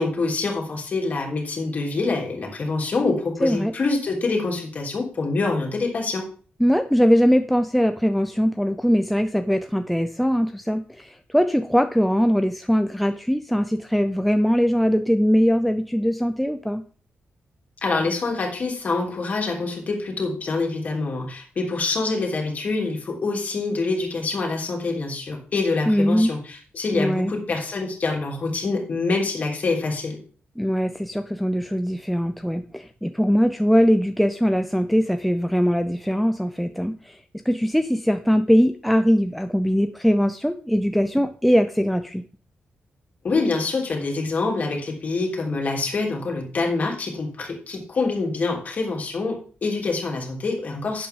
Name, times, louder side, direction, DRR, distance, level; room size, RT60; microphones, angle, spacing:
voice 1, 0.0-6.2 17.8-30.2 43.2-51.1, left 3 dB, 40° left, 0 dB, 3.1 m, -26 dB
voice 2, 3.4-3.7 6.6-16.8 25.9-26.3 26.9-27.3 30.6-37.2 37.5-42.2, equal, ahead, 7 dB, 0.5 m, -21 dB
11.5 x 8.7 x 3.7 m, 0.42 s
wide cardioid pair, 160°, 4 cm